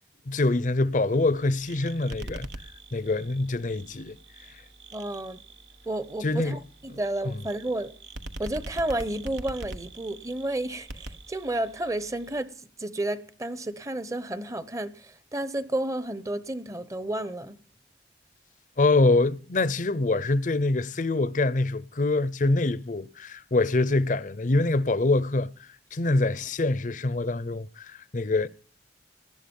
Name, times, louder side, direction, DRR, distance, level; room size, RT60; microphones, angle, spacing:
voice 1, 0.3-2.5 2.9-4.2 6.2-6.6 7.2-7.3 18.8-28.5, left 2 dB, 45° left, 0.6 m, -25 dB
sound 1, 1.1-12.4, right 2 dB, 80° right, 1.2 m, -44 dB
voice 2, 4.9-5.4 5.9-7.9 8.4-12.5 12.8-17.5, right 1 dB, 20° right, 0.9 m, -31 dB
18.5 x 12.0 x 5.4 m
head